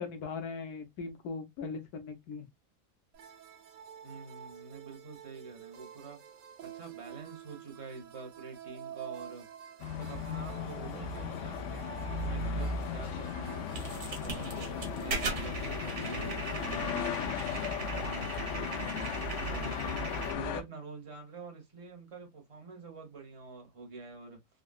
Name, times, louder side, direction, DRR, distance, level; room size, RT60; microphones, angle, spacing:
voice 1, 0.0-2.5, left 4 dB, 65° left, 1.2 m, -39 dB
sound 1, 3.1-16.8, right 10 dB, 90° right, 1.4 m, -49 dB
voice 2, 4.0-6.2 6.6-9.5 9.9-13.6 14.2-20.0 20.4-24.4, right 4 dB, 25° right, 0.8 m, -47 dB
sound 2, 9.8-20.6, left 5 dB, 85° left, 0.6 m, -36 dB
sound 3, 13.7-20.3, right 4 dB, 70° right, 1.6 m, -40 dB
3.7 x 2.2 x 2.3 m
omnidirectional pair, 1.9 m